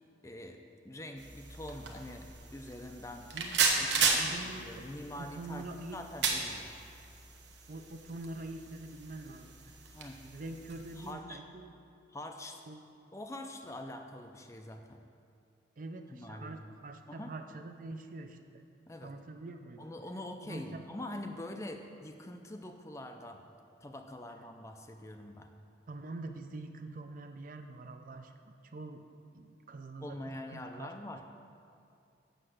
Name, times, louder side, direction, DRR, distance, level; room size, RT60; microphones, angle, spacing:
voice 1, 0.2-0.6 0.8-3.3 3.8-5.7 5.9-6.7 9.9-10.2 11.0-11.4 12.1-12.6 13.1-15.0 16.1-16.5 17.1-17.3 18.9-19.1 19.8-23.4 23.8-25.5 30.0-31.2, left 1 dB, 15° left, 5 dB, 0.4 m, -44 dB
sound 1, 1.2-11.1, right 5 dB, 70° right, 1.0 m, -35 dB
voice 2, 3.3-4.9 5.2-6.0 7.7-9.7 10.3-11.7 12.7-12.8 15.8-18.6 19.0-19.8 20.4-20.8 25.9-29.0 29.3-30.9, right 2 dB, 45° right, 7 dB, 0.5 m, -45 dB
7.8 x 6.6 x 6.3 m, 2.5 s
head